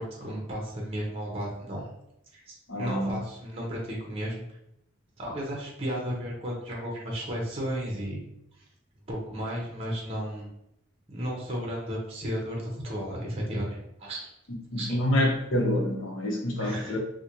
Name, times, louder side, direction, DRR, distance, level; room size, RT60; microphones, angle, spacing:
voice 1, 0.0-1.8 2.3-4.4 5.2-8.2 9.1-10.5 11.1-14.3 14.8-15.0 16.6-17.0, equal, 30° right, -2 dB, 0.7 m, -34 dB
voice 2, 2.7-3.2 14.7-17.0, left 1 dB, 65° left, 0 dB, 0.8 m, -27 dB
3.8 x 2.1 x 2.9 m, 0.82 s
head